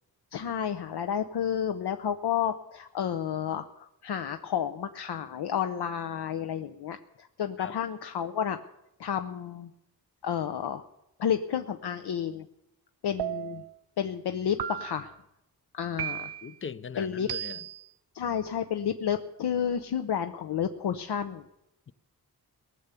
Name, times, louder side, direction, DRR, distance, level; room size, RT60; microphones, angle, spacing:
voice 1, 0.3-8.6 9.0-9.7 10.2-10.8 11.2-12.5 13.0-13.6 14.0-15.1 15.7-16.3 17.0-17.3 18.1-21.4, left 8 dB, 80° left, 0.7 m, -31 dB
sound 1, 13.2-13.8 14.6-15.2 16.0-16.6 17.3-17.9, right 11 dB, 80° right, 0.6 m, -35 dB
voice 2, 16.4-17.7 21.9-22.0, left 6 dB, 30° left, 0.5 m, -40 dB
19.0 x 6.9 x 8.2 m
wide cardioid pair, 125°, 39 cm